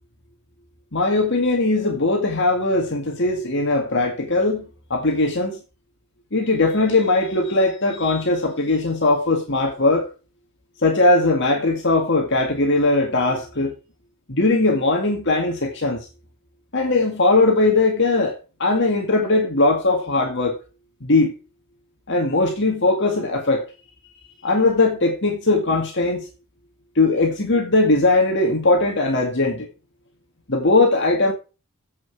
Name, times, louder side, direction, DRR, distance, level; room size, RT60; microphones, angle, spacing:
voice 1, 0.9-5.6 6.3-10.1 10.8-13.7 14.3-16.1 16.7-20.6 21.0-21.4 22.1-23.7 24.4-26.3 27.0-29.7 30.5-31.3, left 2 dB, 55° left, 2.0 m, -19 dB
8.0 x 7.4 x 7.1 m
head